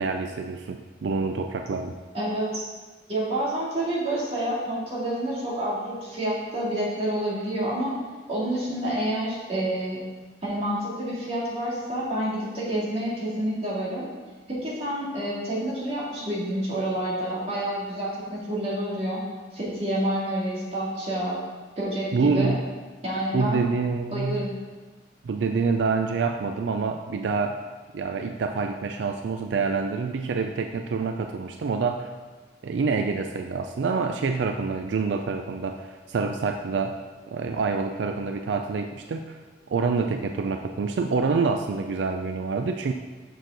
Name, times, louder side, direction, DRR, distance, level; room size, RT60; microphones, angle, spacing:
voice 1, 0.0-1.9 22.1-22.6 23.3-24.4 25.2-27.6 27.9-32.1 32.6-37.0 37.3-39.4 39.7-42.9, right 4 dB, 85° right, 5 dB, 0.4 m, -27 dB
voice 2, 2.1-2.6 3.1-7.9 8.3-10.0 10.4-14.1 14.5-19.2 19.5-21.4 21.8-22.6 23.0-23.6 24.1-24.5, right 1 dB, 35° right, -7 dB, 2.4 m, -28 dB
6.6 x 6.2 x 3.9 m, 1.3 s
head